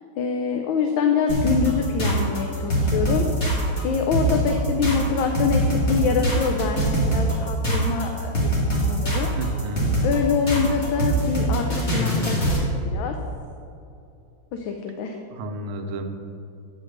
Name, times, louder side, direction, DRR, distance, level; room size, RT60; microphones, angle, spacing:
voice 1, 0.2-3.2 3.8-9.3 10.0-13.1 14.5-15.2, left 6 dB, 80° left, 3 dB, 1.4 m, -25 dB
sound 1, 1.3-12.7, right 1 dB, 35° left, 2.0 m, -23 dB
voice 2, 9.4-9.9 15.3-16.0, right 2 dB, 85° right, 3 dB, 1.6 m, -31 dB
9.1 x 4.8 x 6.3 m, 2.7 s
omnidirectional pair, 2.2 m